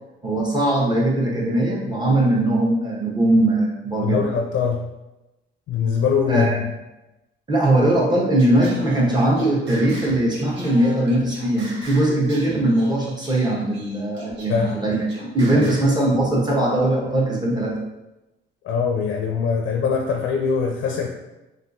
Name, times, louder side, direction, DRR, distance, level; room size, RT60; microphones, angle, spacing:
voice 1, 0.2-4.2 6.3-6.6 7.5-15.1 15.3-17.8, right 1 dB, 20° right, -3 dB, 0.9 m, -20 dB
voice 2, 4.0-4.9 5.7-6.7 14.5-14.8 15.5-15.7 18.6-21.1, left 6 dB, 75° left, 2 dB, 0.4 m, -22 dB
Singing, 8.4-16.0, right 1 dB, 65° right, 1.0 m, -41 dB
3.5 x 2.5 x 2.6 m, 0.99 s
cardioid pair, 90°, 20 cm